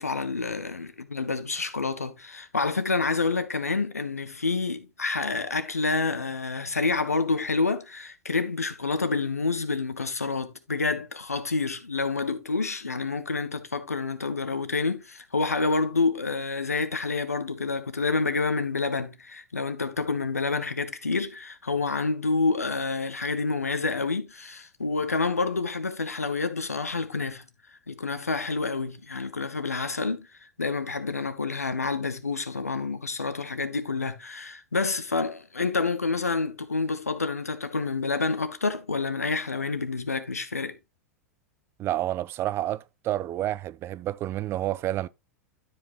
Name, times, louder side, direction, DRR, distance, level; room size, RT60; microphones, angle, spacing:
voice 1, 0.0-27.4 27.9-30.3 30.6-40.8, left 4 dB, 85° left, 1.1 m, -28 dB
voice 2, 41.8-45.1, right 13 dB, 30° right, 0.4 m, -29 dB
12.0 x 5.2 x 3.0 m
figure-of-eight pair, 90°, 8 cm